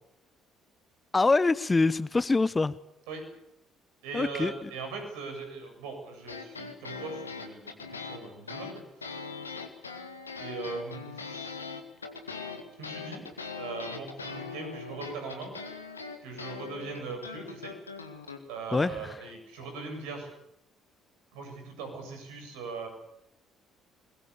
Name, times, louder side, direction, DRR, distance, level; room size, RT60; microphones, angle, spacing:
voice 1, 1.1-2.7 4.1-4.7 18.7-19.2, left 3 dB, 20° left, 0.8 m, -25 dB
voice 2, 4.0-9.1 10.4-11.5 12.4-12.5 12.8-13.3 13.6-15.5 16.2-17.7 18.5-20.3 21.3-22.9, right 4 dB, 65° right, 7.6 m, -40 dB
sound 1, 6.2-18.4, left 5 dB, 85° left, 1.9 m, -41 dB
28.0 x 21.5 x 7.0 m
figure-of-eight pair, 50°, 0 cm